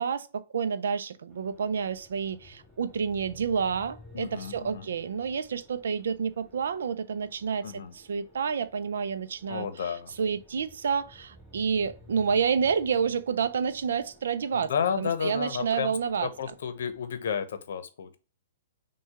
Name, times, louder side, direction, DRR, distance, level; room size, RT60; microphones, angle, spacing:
voice 1, 0.0-14.7 15.0-16.3, right 6 dB, 75° right, 0.5 m, -29 dB
sound 1, 1.3-17.2, left 1 dB, 5° right, 1.4 m, -55 dB
voice 2, 4.1-4.9 7.6-7.9 9.5-10.1 14.5-18.2, left 7 dB, 70° left, 0.8 m, -32 dB
6.2 x 2.3 x 3.4 m
hypercardioid pair, 125°, 0 cm